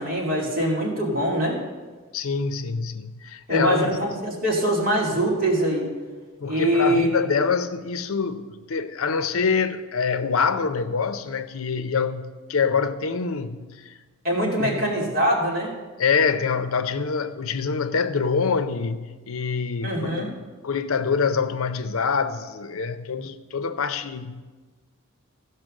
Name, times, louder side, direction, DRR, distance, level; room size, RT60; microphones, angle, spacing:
voice 1, 0.0-1.6 3.5-5.9 6.5-7.2 14.2-15.7 19.8-20.3, right 1 dB, 45° right, 2.7 m, -23 dB
voice 2, 2.1-4.0 6.4-13.9 14.6-14.8 16.0-24.3, left 5 dB, 75° left, 0.6 m, -25 dB
14.5 x 5.5 x 6.4 m
head